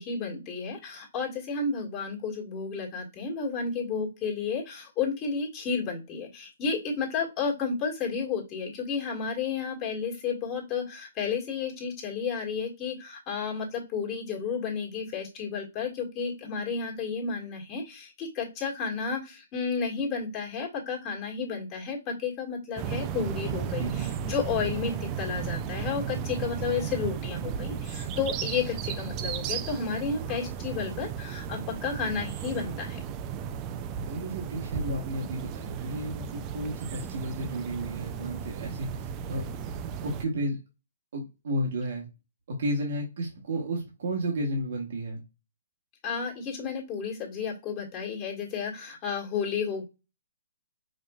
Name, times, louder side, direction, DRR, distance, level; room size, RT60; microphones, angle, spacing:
voice 1, 0.0-33.0 46.0-49.8, left 5 dB, 25° left, 1.5 m, -32 dB
sound 1, 22.8-40.2, right 8 dB, 30° right, 0.3 m, -35 dB
voice 2, 23.6-24.2 34.1-39.4 40.0-40.6 41.1-42.1 42.6-45.2, right 1 dB, 65° right, 1.1 m, -33 dB
5.1 x 2.4 x 2.3 m
hypercardioid pair, 140°, 0 cm